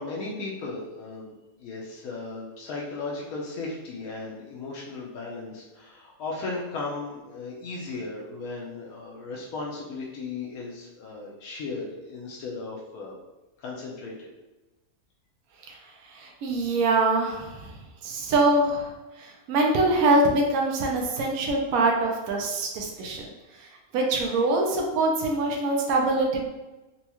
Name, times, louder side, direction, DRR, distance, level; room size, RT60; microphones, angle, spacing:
voice 1, 0.0-13.2 13.6-14.3, left 3 dB, 85° left, -3 dB, 1.1 m, -36 dB
voice 2, 16.1-17.7 18.0-18.9 19.2-23.3 23.6-23.7 23.9-26.5, right 2 dB, 80° right, 0 dB, 1.0 m, -24 dB
4.2 x 2.3 x 2.9 m, 1.1 s
omnidirectional pair, 1.5 m